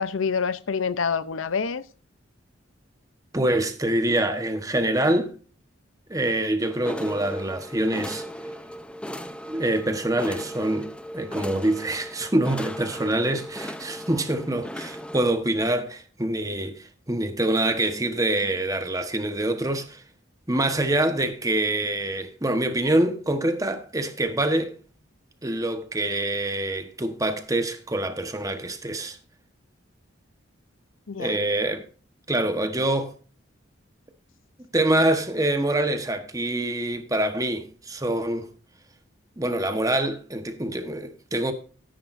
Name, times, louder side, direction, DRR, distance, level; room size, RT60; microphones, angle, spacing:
voice 1, 0.0-1.8 31.1-31.4, left 5 dB, 85° left, 0.7 m, -27 dB
voice 2, 3.3-5.3 6.1-8.2 9.5-20.0 20.5-24.8 25.4-29.2 31.2-31.8 32.3-33.1 34.7-38.5 39.4-41.5, right 1 dB, 15° right, 1.2 m, -25 dB
sound 1, 6.6-15.3, equal, 5° left, 0.6 m, -37 dB
13.5 x 10.5 x 2.6 m
head